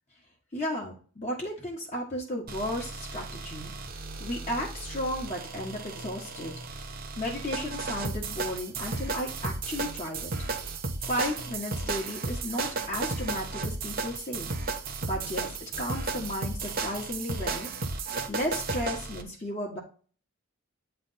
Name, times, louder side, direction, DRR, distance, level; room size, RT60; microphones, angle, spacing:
voice 1, 0.5-3.7 4.2-6.5 7.2-10.3 11.1-14.5 15.0-17.7 18.3-19.8, left 1 dB, 30° left, -2 dB, 1.3 m, -34 dB
sound 1, 2.5-19.2, right 3 dB, 45° right, 0.8 m, -34 dB
8.9 x 3.4 x 4.1 m, 0.40 s
head